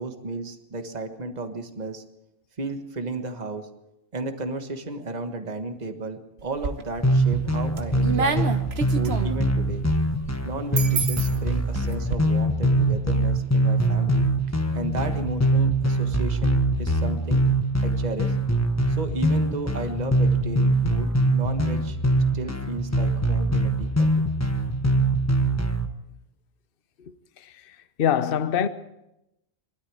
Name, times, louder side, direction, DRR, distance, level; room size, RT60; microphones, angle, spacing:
voice 1, 0.0-2.0 2.6-3.7 4.1-8.5 8.9-9.8 10.4-14.3 14.7-17.4 17.8-18.4 18.9-22.0 22.3-24.3, right 2 dB, 35° right, 1.6 m, -33 dB
sound 1, 6.4-7.1 7.5-12.2, right 4 dB, 60° right, 1.4 m, -29 dB
sound 2, 7.0-25.9, right 1 dB, 15° left, 1.2 m, -23 dB
voice 2, 27.0-28.7, left 8 dB, 50° left, 1.0 m, -26 dB
23.0 x 13.0 x 8.8 m
omnidirectional pair, 1.2 m